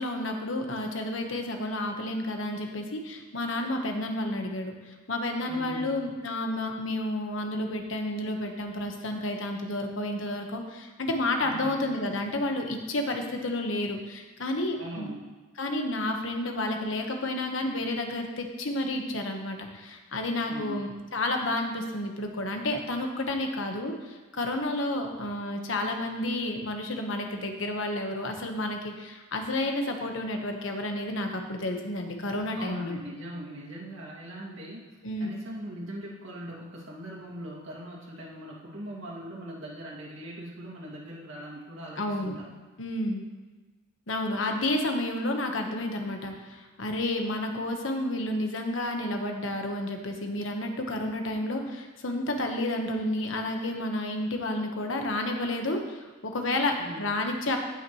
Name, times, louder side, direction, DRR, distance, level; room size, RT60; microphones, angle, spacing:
voice 1, 0.0-15.1 15.6-33.0 35.0-35.3 42.0-42.4 42.8-43.2 44.1-57.6, left 1 dB, 80° left, 3 dB, 1.3 m, -31 dB
voice 2, 5.5-5.9 11.4-11.7 14.8-15.2 20.5-20.9 32.6-34.8 35.2-42.5 56.8-57.1, equal, 75° right, -4 dB, 2.3 m, -40 dB
17.5 x 6.0 x 3.1 m, 1.3 s
head